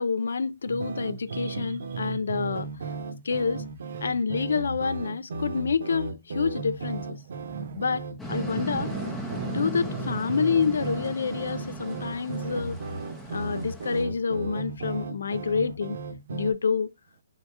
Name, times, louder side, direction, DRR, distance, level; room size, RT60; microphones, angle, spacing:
voice 1, 0.0-2.7 3.2-3.6 4.0-7.0 7.8-8.9 9.5-12.8 13.3-16.0 16.3-16.9, left 5 dB, 80° left, 0.4 m, -28 dB
sound 1, 0.7-16.5, right 4 dB, 75° right, 1.0 m, -35 dB
voice 2, 7.3-7.8 8.4-9.8 11.7-12.5 13.1-13.3, right 8 dB, 40° right, 0.4 m, -45 dB
sound 2, 8.2-14.0, left 1 dB, 5° left, 0.7 m, -38 dB
3.6 x 2.8 x 4.5 m
hypercardioid pair, 170°, 0 cm